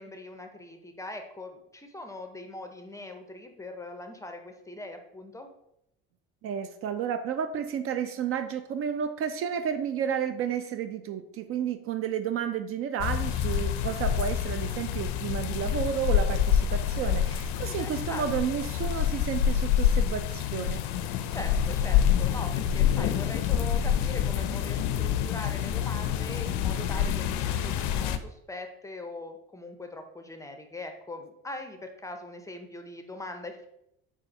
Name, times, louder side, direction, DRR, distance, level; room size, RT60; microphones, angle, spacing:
voice 1, 0.0-5.5 17.6-18.3 21.3-33.7, left 2 dB, 10° left, 5 dB, 0.5 m, -41 dB
voice 2, 6.4-20.8, right 8 dB, 50° right, 9 dB, 0.4 m, -31 dB
sound 1, 13.0-28.2, left 9 dB, 70° left, 0.4 m, -27 dB
4.1 x 2.4 x 4.0 m, 0.80 s
supercardioid pair, 80°, 30 cm